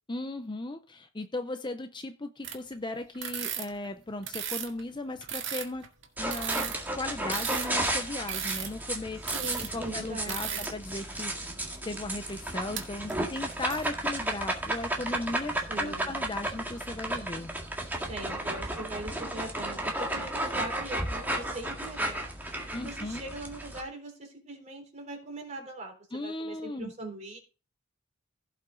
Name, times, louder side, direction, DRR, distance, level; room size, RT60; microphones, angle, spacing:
voice 1, 0.1-5.9 6.2-11.5 11.9-17.5 22.7-23.2 26.1-26.9, left 2 dB, 20° left, 0.6 m, -37 dB
sound 1, 2.4-2.7 3.1-4.8 5.2-9.7 10.3-10.7 11.1-11.2 12.2-12.8 13.1-13.9, right 9 dB, 60° right, 2.0 m, -36 dB
sound 2, 6.2-23.8, right 1 dB, 10° right, 1.9 m, -33 dB
voice 2, 9.3-10.7 15.7-16.2 18.0-22.3 22.7-27.4, right 2 dB, 35° right, 3.6 m, -41 dB
16.0 x 5.9 x 3.9 m
head